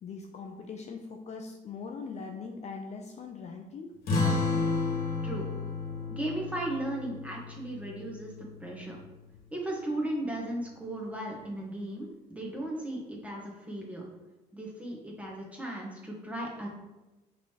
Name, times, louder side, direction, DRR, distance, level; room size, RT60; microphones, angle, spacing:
voice 1, 0.0-4.0, left 5 dB, 40° left, 3 dB, 0.5 m, -41 dB
sound 1, 4.1-9.1, left 3 dB, 65° left, 1.2 m, -32 dB
voice 2, 6.1-9.0 9.5-14.0 14.5-16.7, right 1 dB, 10° right, -2 dB, 1.1 m, -36 dB
5.3 x 3.2 x 2.9 m, 1.1 s
cardioid pair, 110°, 17 cm